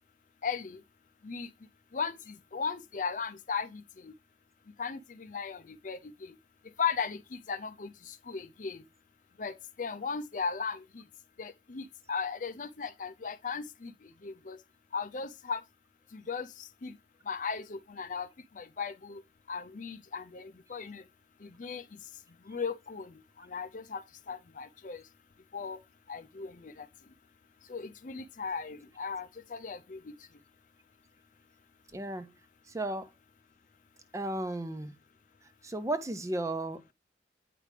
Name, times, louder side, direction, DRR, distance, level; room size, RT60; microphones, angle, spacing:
voice 1, 0.4-0.8 1.2-1.5 1.9-4.1 4.8-6.3 6.8-8.8 9.4-11.0 11.4-13.9 14.2-14.6 14.9-15.6 16.1-16.9 17.3-18.3 18.6-19.2 19.5-21.0 21.4-21.8 22.5-24.0 24.3-25.0 25.5-25.8 26.1-26.9 27.7-30.0, left 5 dB, 45° left, 0.5 m, -37 dB
voice 2, 31.9-32.3 32.7-33.1 34.1-34.9 35.6-36.9, right 1 dB, 15° right, 0.5 m, -34 dB
8.5 x 5.0 x 3.3 m
head